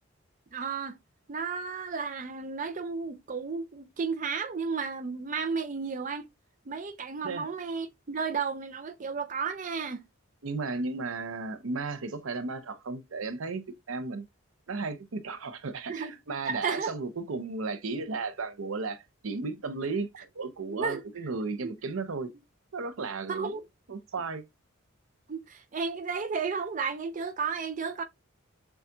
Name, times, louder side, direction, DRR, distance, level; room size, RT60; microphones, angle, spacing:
voice 1, 0.5-1.0 1.3-6.3 6.7-10.0 15.9-16.1 16.5-16.9 20.7-21.0 23.3-23.6 25.3-28.0, right 5 dB, 40° right, 0.5 m, -33 dB
voice 2, 10.4-14.2 14.7-22.3 22.7-23.6 23.9-24.4, right 3 dB, 75° right, 0.7 m, -34 dB
6.9 x 2.3 x 2.6 m
head